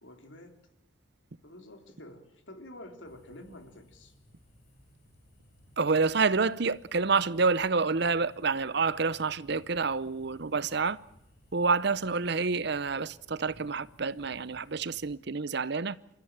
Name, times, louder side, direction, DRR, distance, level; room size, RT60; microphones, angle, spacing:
voice 1, 0.0-0.6 1.4-4.1, left 1 dB, 70° left, 3.6 m, -48 dB
sound 1, 3.0-15.2, equal, 50° left, 6.9 m, -60 dB
voice 2, 5.8-11.0 11.5-16.0, right 4 dB, 60° right, 0.8 m, -28 dB
28.5 x 14.5 x 8.9 m
head